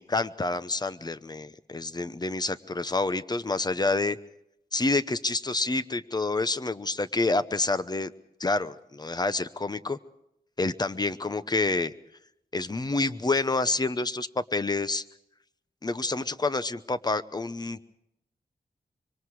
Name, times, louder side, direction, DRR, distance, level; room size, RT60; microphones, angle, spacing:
voice 1, 0.0-4.2 4.7-8.1 8.4-10.0 10.6-11.9 12.5-15.0 15.8-17.8, left 3 dB, 25° left, 13 dB, 0.9 m, -28 dB
25.5 x 24.5 x 4.9 m, 0.78 s
wide cardioid pair, 85°, 16 cm